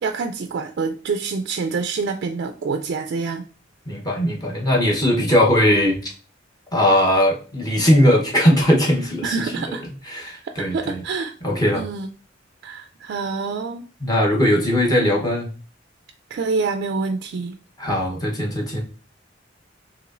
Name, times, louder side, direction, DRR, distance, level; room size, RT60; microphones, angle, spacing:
voice 1, 0.0-3.4 9.2-9.8 10.4-11.3 11.7-12.1 12.6-13.8 16.3-17.5, right 4 dB, 55° right, 6 dB, 0.3 m, -26 dB
voice 2, 3.9-6.1 6.7-9.5 10.1-11.0 11.4-11.8 14.0-15.5 17.8-18.8, left 1 dB, 20° left, -1 dB, 0.9 m, -19 dB
4.7 x 3.0 x 2.5 m, 0.39 s
head